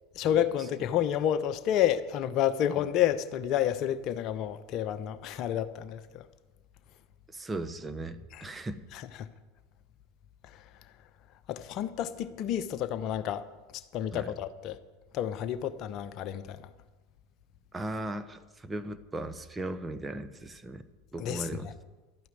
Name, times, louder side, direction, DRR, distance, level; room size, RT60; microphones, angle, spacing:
voice 1, 0.1-6.2 8.3-8.4 8.9-9.3 11.5-13.5 13.9-14.8 15.1-16.7 21.2-21.7, left 10 dB, 45° left, 1.0 m, -30 dB
voice 2, 7.3-8.8 14.1-14.3 17.7-20.9 21.1-21.7, right 2 dB, 15° right, 1.1 m, -37 dB
12.5 x 9.2 x 9.4 m
figure-of-eight pair, 80°, 0 cm